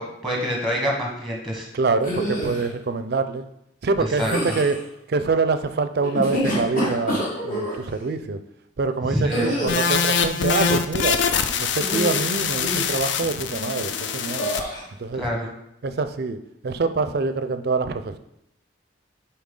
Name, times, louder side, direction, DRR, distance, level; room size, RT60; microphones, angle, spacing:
voice 1, 0.0-1.7 4.2-4.5 9.1-9.6 15.2-15.5, equal, ahead, -1 dB, 1.1 m, -26 dB
voice 2, 1.7-3.5 3.8-8.4 8.8-11.2 11.6-14.5 14.9-15.3 15.8-18.2, right 4 dB, 55° right, 11 dB, 0.4 m, -25 dB
sound 1, 2.0-2.7 4.1-4.8 6.0-7.8 9.3-10.0 11.8-12.3 12.6-13.0 14.4-14.8, equal, 45° left, 1.8 m, -27 dB
sound 2, 9.7-14.6, left 6 dB, 70° left, 0.4 m, -24 dB
7.3 x 4.3 x 3.7 m, 0.80 s
head